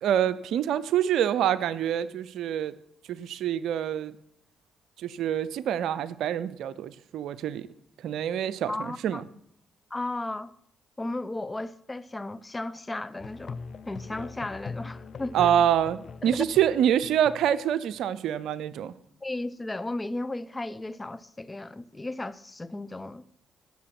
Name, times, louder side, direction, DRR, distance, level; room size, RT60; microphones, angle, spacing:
voice 1, 0.0-2.7 3.1-4.1 5.0-7.7 8.0-9.3 15.3-18.9, right 10 dB, 75° right, 0.6 m, -26 dB
voice 2, 8.7-9.2 9.9-10.5 11.0-13.6 13.9-15.5 16.2-16.4 19.2-23.2, left 2 dB, 20° left, 0.7 m, -35 dB
Musical instrument, 13.2-18.0, left 5 dB, 55° left, 0.7 m, -42 dB
16.5 x 7.1 x 6.0 m
supercardioid pair, 60°, 0 cm